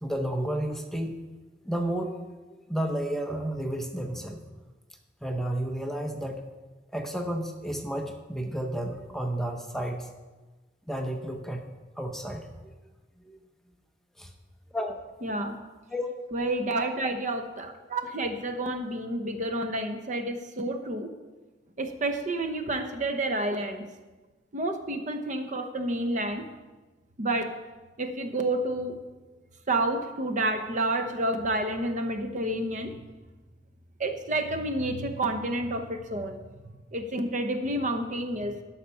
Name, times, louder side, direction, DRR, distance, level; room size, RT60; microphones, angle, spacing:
voice 1, 0.0-1.1 1.6-4.4 5.2-6.4 6.9-10.1 10.9-11.6 12.0-12.5 13.2-13.4 14.2-14.3 14.7-15.0 15.9-16.1, right 1 dB, ahead, 3 dB, 0.7 m, -32 dB
voice 2, 15.2-15.6 16.3-21.1 21.8-23.8 24.5-26.5 27.2-27.5 28.0-29.0 29.7-32.9 34.0-36.4 36.9-38.6, right 1 dB, 45° right, 7 dB, 0.8 m, -29 dB
13.0 x 5.8 x 5.5 m, 1.2 s
head